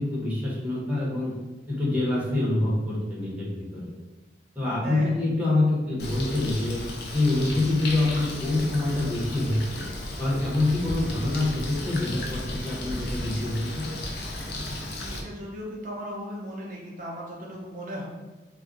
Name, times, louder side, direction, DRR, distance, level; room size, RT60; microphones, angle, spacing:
voice 1, 0.0-1.3 1.7-3.8 4.5-6.8 7.1-9.8 10.2-13.9, left 2 dB, 10° right, -6 dB, 0.7 m, -26 dB
voice 2, 4.8-5.2 15.1-18.1, equal, 50° right, -3 dB, 0.5 m, -36 dB
Bird, 6.0-15.2, left 1 dB, 65° left, 0.5 m, -34 dB
2.4 x 2.1 x 3.6 m, 1.2 s
head